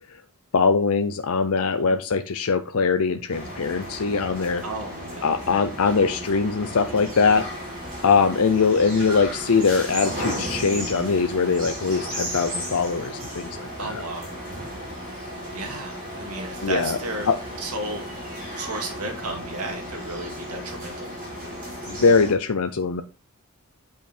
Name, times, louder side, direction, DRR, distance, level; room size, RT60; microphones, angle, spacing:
voice 1, 0.5-4.6 5.2-7.5 8.0-14.0 16.6-17.0 17.3-17.4 21.9-23.0, left 5 dB, 70° left, 7 dB, 0.6 m, -22 dB
sound 1, 3.3-22.3, equal, 40° right, 4.6 m, -34 dB
voice 2, 4.6-5.3 13.8-14.3 15.5-17.3 17.6-18.0 18.6-21.1, right 2 dB, 80° right, 3 dB, 2.1 m, -33 dB
sound 2, 7.4-18.9, right 2 dB, 20° right, 2.0 m, -48 dB
8.5 x 5.9 x 4.4 m, 0.31 s
head